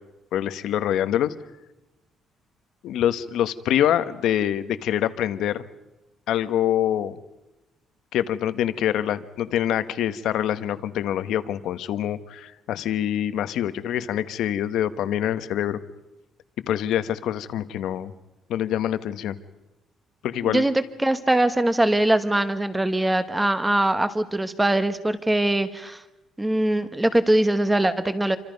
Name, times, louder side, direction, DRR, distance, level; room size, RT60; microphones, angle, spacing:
voice 1, 0.3-1.3 2.8-5.6 6.3-7.2 8.1-15.8 16.7-18.1 18.5-19.4 20.2-20.6, left 11 dB, 70° left, 12 dB, 1.2 m, -25 dB
voice 2, 21.0-26.0 26.4-28.4, right 1 dB, 10° right, 11 dB, 1.1 m, -22 dB
28.5 x 25.0 x 5.3 m, 1.0 s
cardioid pair, 180°, 0 cm